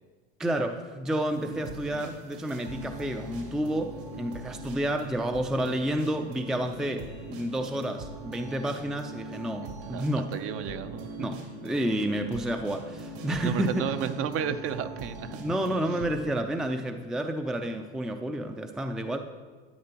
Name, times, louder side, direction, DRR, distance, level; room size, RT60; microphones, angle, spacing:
voice 1, 0.4-10.3 11.2-13.9 15.3-19.2, right 1 dB, ahead, 6 dB, 0.4 m, -30 dB
sound 1, 1.3-16.3, right 1 dB, 70° right, 3.0 m, -41 dB
voice 2, 9.6-10.0 10.3-11.3 13.4-15.4, right 8 dB, 40° right, 10 dB, 0.6 m, -33 dB
12.0 x 9.4 x 2.9 m, 1.4 s
hypercardioid pair, 95°, 33 cm